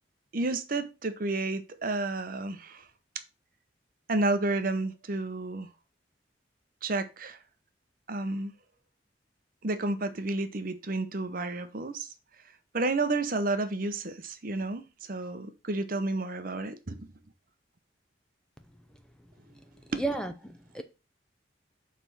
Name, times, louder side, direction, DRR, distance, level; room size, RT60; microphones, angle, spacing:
voice 1, 0.3-2.9 4.1-5.7 6.8-7.4 8.1-8.5 9.6-12.1 12.7-17.1 19.9-20.0, right 2 dB, 50° right, 0.8 m, -31 dB
voice 2, 20.0-20.8, right 2 dB, 5° left, 0.5 m, -33 dB
6.7 x 3.4 x 6.0 m
head